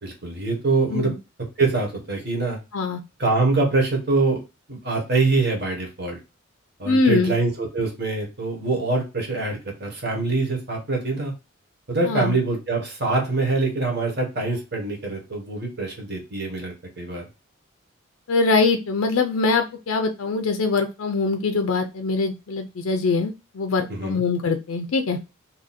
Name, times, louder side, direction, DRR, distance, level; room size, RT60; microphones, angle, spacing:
voice 1, 0.0-1.1 1.6-2.6 3.2-4.4 4.7-6.2 6.8-11.3 11.9-17.2 23.9-24.2, right 3 dB, 50° right, 1 dB, 1.3 m, -24 dB
voice 2, 6.8-7.3 12.0-12.3 18.3-25.2, left 3 dB, 80° left, 6 dB, 0.5 m, -23 dB
2.8 x 2.6 x 4.0 m, 0.28 s
head